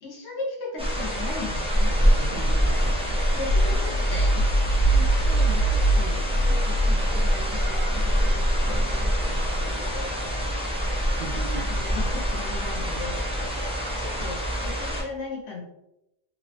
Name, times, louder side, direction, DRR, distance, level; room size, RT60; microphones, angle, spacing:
voice 1, 0.0-2.2 3.4-4.5 4.9-10.5 11.5-13.6 14.0-15.6, left 3 dB, 90° left, -2 dB, 0.9 m, -38 dB
sound 1, 0.8-15.0, equal, 10° right, 0.3 m, -26 dB
voice 2, 2.0-3.4 3.7-3.8 11.1-11.8, right 2 dB, 55° right, -4 dB, 0.7 m, -38 dB
sound 2, 3.1-8.9 9.4-9.7 10.9-11.2 12.3-12.8, right 1 dB, 60° left, 0.7 m, -24 dB
3.0 x 2.0 x 2.7 m, 0.89 s
omnidirectional pair, 1.1 m